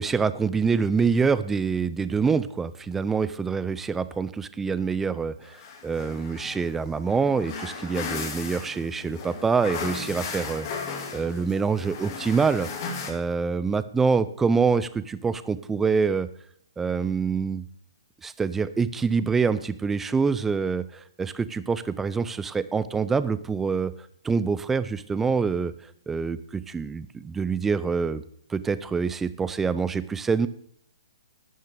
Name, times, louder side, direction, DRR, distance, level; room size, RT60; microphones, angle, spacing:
voice 1, 0.0-10.7 11.1-12.7 13.1-16.3 16.8-17.6 18.2-23.9 24.2-25.7 26.1-28.2 28.5-30.5, right 5 dB, 10° right, 15 dB, 0.7 m, -25 dB
sound 1, 5.4-13.1, left 5 dB, 45° left, 2.9 m, -36 dB
12.0 x 9.5 x 6.9 m, 0.66 s
hypercardioid pair, 135°, 3 cm